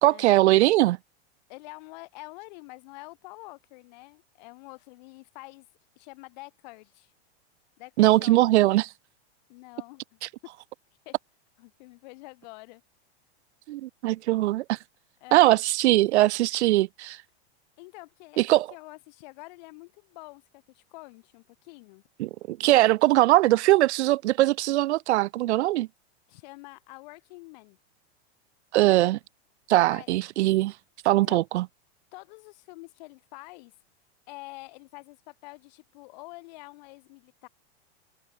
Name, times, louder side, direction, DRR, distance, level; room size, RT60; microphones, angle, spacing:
voice 1, 0.0-1.0 8.0-8.9 13.7-14.8 15.3-17.2 18.4-18.7 22.2-25.9 28.7-29.2 29.7-30.7 31.0-31.6, right 16 dB, 80° right, 0.6 m, -21 dB
voice 2, 1.5-5.7 5.9-7.1 7.8-8.4 9.5-10.2 11.0-11.2 11.6-12.8 15.2-15.6 17.8-22.0 26.3-27.8 29.9-30.1 31.1-31.4 32.1-33.7 34.3-37.5, left 25 dB, 40° left, 3.2 m, -46 dB
supercardioid pair, 175°, 33 cm